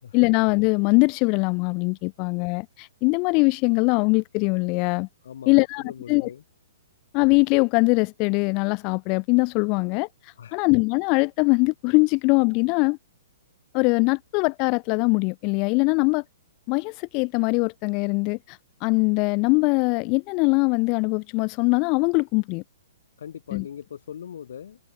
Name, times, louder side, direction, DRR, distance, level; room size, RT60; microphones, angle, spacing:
voice 1, 0.1-5.1 5.5-6.3 7.1-13.0 13.7-16.2 16.7-22.6 23.5-23.7, left 32 dB, 35° left, 0.5 m, -22 dB
voice 2, 5.2-6.4 10.4-10.6 23.2-24.8, left 9 dB, 70° left, 4.9 m, -40 dB
hypercardioid pair, 135°, 0 cm